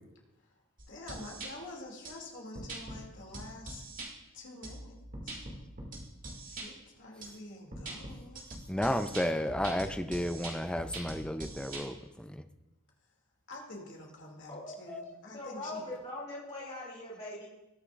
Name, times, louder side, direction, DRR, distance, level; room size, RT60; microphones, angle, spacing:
sound 1, 0.8-1.5 2.0-2.1 2.5-3.0 3.3-4.1 4.6-6.7 7.2-7.3 7.7-11.8, right 2 dB, 40° right, 2.3 m, -43 dB
voice 1, 0.9-3.8 4.3-5.5 6.2-8.4 13.5-15.8, left 2 dB, 60° left, -1 dB, 2.6 m, -47 dB
voice 2, 8.7-12.4, equal, 5° left, 9 dB, 0.4 m, -32 dB
voice 3, 14.5-17.5, left 2 dB, 30° left, -6 dB, 2.9 m, -42 dB
20.5 x 6.9 x 2.5 m, 0.98 s
head